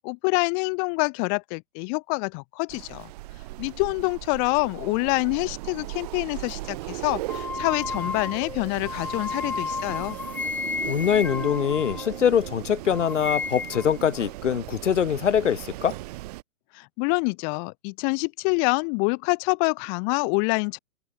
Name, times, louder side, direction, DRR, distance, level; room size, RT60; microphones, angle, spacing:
voice 1, 0.0-3.1 3.6-10.2 16.7-20.8, left 40 dB or more, 20° left, 6.4 m, -26 dB
Wind, 2.7-16.4, right 19 dB, 25° right, 6.0 m, -37 dB
sound 1, 7.3-12.6 12.9-14.0, left 5 dB, 5° left, 1.5 m, -33 dB
voice 2, 10.9-15.9, left 8 dB, 55° left, 5.8 m, -23 dB
hypercardioid pair, 170°, 44 cm